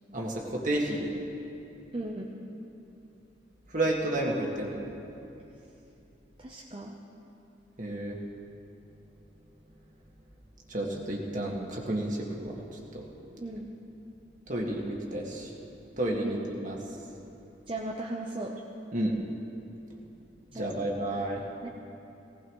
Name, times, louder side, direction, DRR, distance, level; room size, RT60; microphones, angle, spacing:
voice 1, 0.1-1.1 3.7-4.9 7.8-8.2 10.7-12.6 12.9-13.1 14.5-15.5 16.0-16.8 18.9-19.2 20.5-21.4, right 1 dB, 45° right, -1 dB, 1.9 m, -31 dB
voice 2, 1.9-2.3 6.4-7.0 13.4-13.7 16.2-16.4 17.7-18.6 20.5-20.8 21.6-21.7, right 2 dB, 30° right, -1 dB, 0.8 m, -36 dB
19.5 x 17.5 x 3.2 m, 2.9 s
head